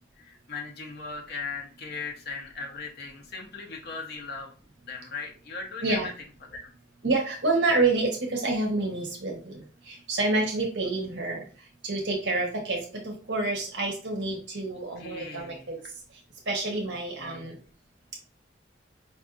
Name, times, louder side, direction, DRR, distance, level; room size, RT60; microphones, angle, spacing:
voice 1, 0.2-4.5 4.9-6.0 6.5-6.7 14.7-15.7 16.9-17.6, left 4 dB, 55° left, 1 dB, 0.8 m, -39 dB
voice 2, 7.0-9.5 9.9-11.5 11.8-15.8 16.5-17.6, right 2 dB, 65° right, 0 dB, 1.1 m, -28 dB
5.2 x 2.6 x 2.4 m, 0.38 s
head